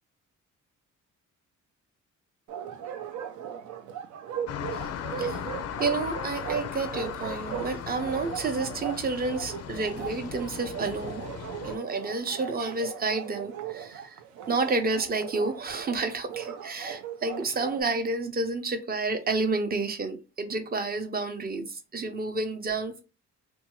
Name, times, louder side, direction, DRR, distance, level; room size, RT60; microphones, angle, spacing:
Bark, 2.5-17.8, right 8 dB, 70° right, 0.6 m, -38 dB
sound 1, 4.5-11.8, left 9 dB, 55° left, 0.4 m, -37 dB
voice 1, 5.8-11.2 11.6-14.2 14.5-23.0, right 3 dB, 30° right, 0.7 m, -30 dB
2.6 x 2.3 x 3.0 m
cardioid pair, 90°, 30 cm